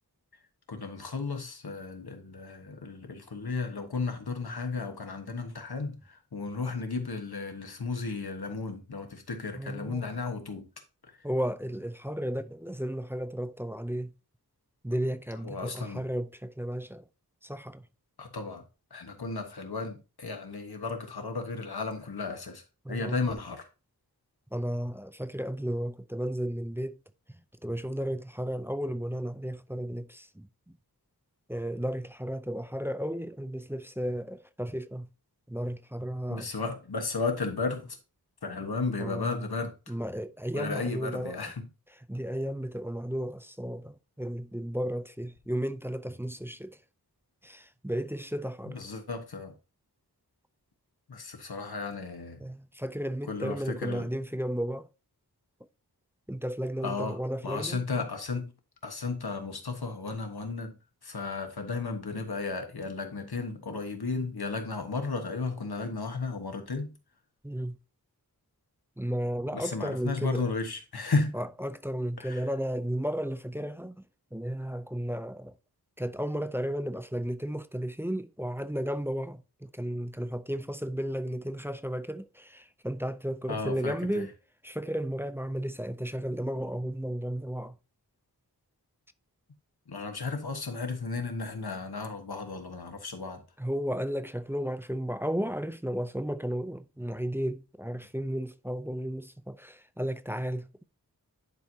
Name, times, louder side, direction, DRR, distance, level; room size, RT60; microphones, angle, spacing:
voice 1, 0.7-10.7 11.2-11.3 15.4-16.0 18.2-18.6 18.9-23.7 36.3-38.0 38.4-39.8 40.5-41.7 48.7-49.5 51.1-52.4 53.3-54.1 56.8-57.2 57.4-58.5 58.8-60.8 61.0-66.9 69.5-71.4 72.2-72.4 83.5-84.2 89.9-93.4, left 4 dB, 80° left, 1.4 m, -34 dB
voice 2, 9.6-10.1 11.2-14.1 14.8-17.1 17.4-17.9 22.8-23.2 24.5-27.0 27.3-30.5 31.5-35.1 35.5-36.5 39.0-39.5 39.9-41.4 42.1-46.8 47.4-48.8 52.4-54.9 56.3-57.8 67.4-67.8 69.0-70.4 71.3-74.0 74.3-75.6 76.0-84.3 84.6-87.8 93.6-100.8, equal, 5° right, 0.4 m, -34 dB
10.5 x 4.6 x 2.7 m
wide cardioid pair, 65°, 37 cm